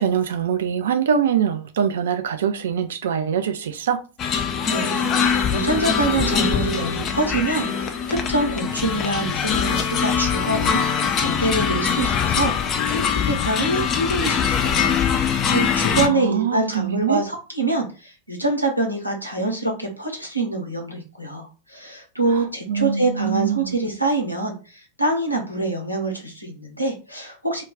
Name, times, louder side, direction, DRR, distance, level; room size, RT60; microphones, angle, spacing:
voice 1, 0.0-4.0 15.9-17.2 22.3-23.8, right 8 dB, 60° right, 0.4 m, -23 dB
sound 1, 4.2-16.1, left 7 dB, 30° left, 0.4 m, -22 dB
voice 2, 4.7-10.8 11.2-27.6, right 2 dB, 90° left, 0.8 m, -25 dB
2.3 x 2.2 x 3.6 m
figure-of-eight pair, 90°, 0 cm